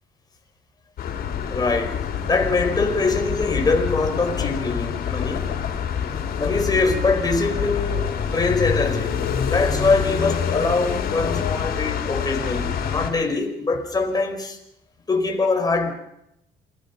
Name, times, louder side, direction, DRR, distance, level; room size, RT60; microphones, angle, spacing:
sound 1, 1.0-13.1, left 8 dB, 65° left, 5.5 m, -26 dB
voice 1, 1.5-2.0 2.3-5.5 6.4-14.6 15.1-15.9, left 3 dB, 25° left, 5.1 m, -23 dB
28.5 x 20.0 x 6.0 m
cardioid pair, 110°, 17 cm